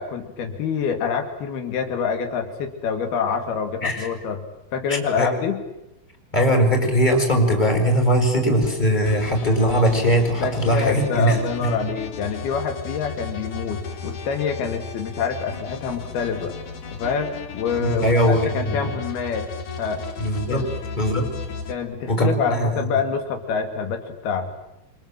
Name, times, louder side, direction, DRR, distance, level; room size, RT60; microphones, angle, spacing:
voice 1, 0.0-4.5 4.7-5.6 10.4-16.5 16.9-19.5 19.8-20.0 20.5-20.7 21.7-24.5, left 6 dB, 85° left, 6 dB, 4.3 m, -26 dB
voice 2, 4.9-5.3 6.3-11.7 17.8-18.9 20.2-20.6 21.0-21.3 22.1-22.9, equal, 10° left, 3 dB, 6.7 m, -20 dB
sound 1, 9.1-21.7, left 4 dB, 55° left, 4.2 m, -35 dB
29.0 x 25.5 x 7.7 m, 0.92 s
omnidirectional pair, 4.3 m